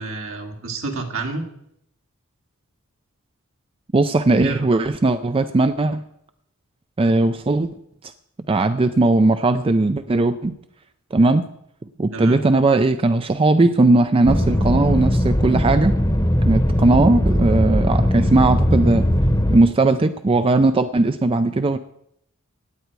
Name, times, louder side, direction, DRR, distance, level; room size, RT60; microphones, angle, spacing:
voice 1, 0.0-1.4 4.4-4.7 12.1-12.4, right 3 dB, 70° right, 2 dB, 2.0 m, -29 dB
voice 2, 3.9-6.0 7.0-7.7 8.5-10.6 11.1-11.5 12.0-15.9 16.5-19.1 19.5-21.8, right 2 dB, 25° right, 10 dB, 0.4 m, -18 dB
sound 1, 14.3-19.6, equal, 15° left, 0.9 m, -19 dB
17.0 x 9.2 x 4.7 m, 0.75 s
head